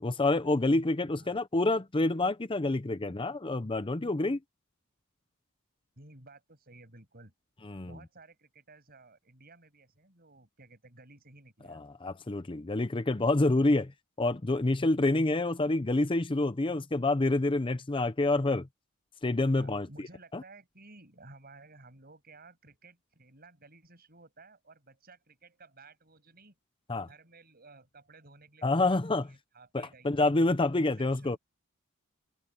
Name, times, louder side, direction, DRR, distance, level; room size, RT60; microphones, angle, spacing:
voice 1, 0.0-4.4 7.7-7.9 11.7-13.9 14.2-18.7 19.2-19.9 26.9-27.1 28.6-29.2 29.7-31.4, left 2 dB, 25° left, 0.6 m, -27 dB
voice 2, 6.0-7.3 7.8-11.8 19.5-26.6 27.1-30.3 30.7-31.4, right 3 dB, 45° right, 7.3 m, -55 dB
head